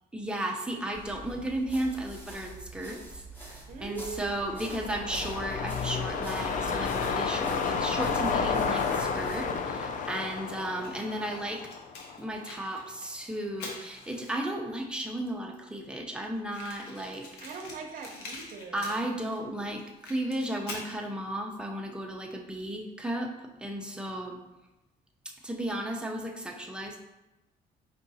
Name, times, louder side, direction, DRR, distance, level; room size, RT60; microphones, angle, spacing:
voice 1, 0.1-3.0 3.5-11.6 12.2-17.3 18.7-23.3 23.6-24.4 25.4-27.0, right 1 dB, 5° right, 1 dB, 0.6 m, -34 dB
sound 1, 0.9-9.6, right 1 dB, 10° left, 1.1 m, -45 dB
voice 2, 3.7-5.0 17.4-19.0, right 4 dB, 55° right, 3 dB, 0.7 m, -41 dB
sound 2, 4.2-12.7 13.0-13.1, left 5 dB, 50° left, 0.4 m, -31 dB
Fire, 10.8-14.6 15.3-15.4 15.5-15.6 15.8-15.9 16.5-19.4 19.7-20.9, left 3 dB, 75° left, 1.0 m, -45 dB
4.7 x 2.5 x 4.1 m, 0.99 s
cardioid pair, 110°, 17 cm